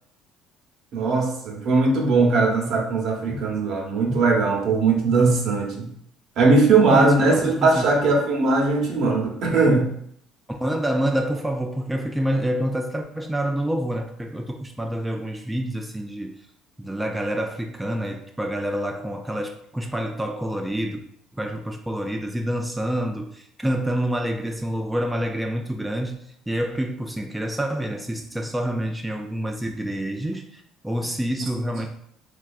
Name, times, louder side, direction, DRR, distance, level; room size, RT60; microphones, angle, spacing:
voice 1, 0.9-5.9 6.4-9.9, right 3 dB, 65° right, 0 dB, 0.7 m, -19 dB
voice 2, 6.9-7.9 10.5-16.3 16.8-21.0 21.3-31.9, right 1 dB, 10° right, 2 dB, 0.3 m, -27 dB
3.3 x 2.3 x 2.3 m, 0.67 s
supercardioid pair, 90°, 0 cm